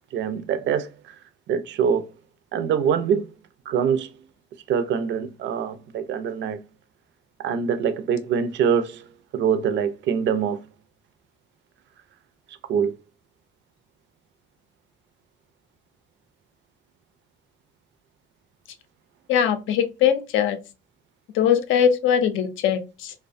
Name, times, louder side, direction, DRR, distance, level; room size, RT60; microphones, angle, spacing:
voice 1, 0.1-1.2 1.5-2.1 2.5-3.3 3.7-4.2 4.7-6.6 7.4-9.1 9.3-10.6 12.7-12.9, right 7 dB, 65° right, 0.4 m, -24 dB
voice 2, 19.3-20.6 21.3-23.1, left 8 dB, 80° left, 0.5 m, -21 dB
2.3 x 2.1 x 2.5 m
cardioid pair, 90°, 20 cm